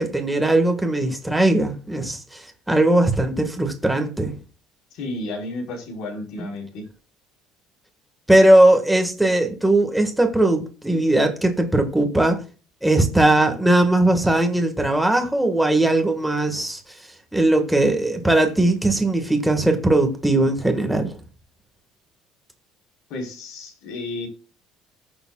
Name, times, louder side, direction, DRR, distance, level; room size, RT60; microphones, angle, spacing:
voice 1, 0.0-4.3 6.4-6.5 8.3-12.4 12.8-16.8 17.3-21.2, right 1 dB, 5° right, 1.6 m, -19 dB
voice 2, 4.9-6.9 23.1-24.3, left 2 dB, 55° left, 4.1 m, -32 dB
20.0 x 7.0 x 2.3 m
cardioid pair, 170°, 0 cm